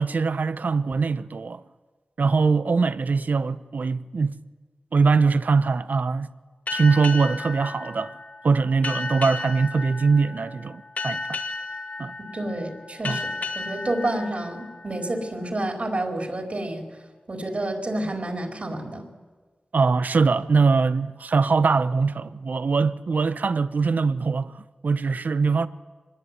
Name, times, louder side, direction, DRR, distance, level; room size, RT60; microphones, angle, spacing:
voice 1, 0.0-1.6 2.2-4.4 4.9-6.3 6.7-8.2 8.4-11.4 12.0-12.1 13.0-13.2 19.7-25.7, right 4 dB, 70° right, 0.9 m, -22 dB
sound 1, 6.7-15.8, left 3 dB, 60° left, 2.8 m, -34 dB
voice 2, 12.3-16.8 17.3-19.1, right 1 dB, 50° right, 4.8 m, -29 dB
25.0 x 21.5 x 9.5 m
cardioid pair, 50°, 3 cm